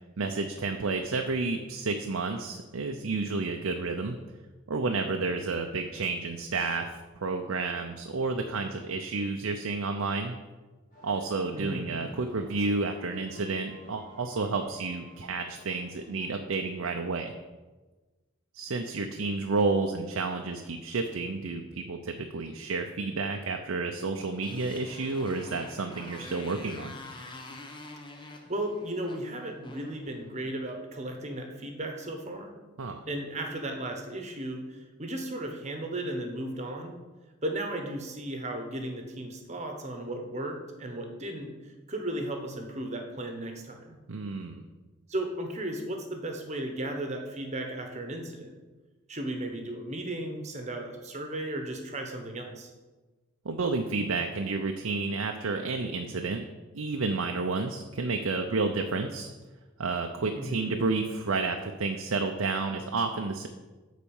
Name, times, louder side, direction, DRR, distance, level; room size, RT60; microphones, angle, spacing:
voice 1, 0.2-4.2 4.7-10.4 11.0-17.3 18.5-26.9 32.8-33.0 44.1-44.6 53.4-56.4 56.7-59.3 59.8-63.5, right 3 dB, 80° right, 4 dB, 0.6 m, -30 dB
sound 1, 10.9-16.3, right 1 dB, 40° left, 2.1 m, -53 dB
voice 2, 11.5-12.0 28.1-32.5 33.1-37.0 37.4-41.5 41.9-44.0 45.1-48.5 49.1-52.7 60.3-60.8, right 1 dB, 30° right, 4 dB, 1.1 m, -35 dB
Motorcycle, 24.1-30.6, left 2 dB, 20° left, 0.7 m, -47 dB
9.2 x 4.2 x 7.1 m, 1.2 s
head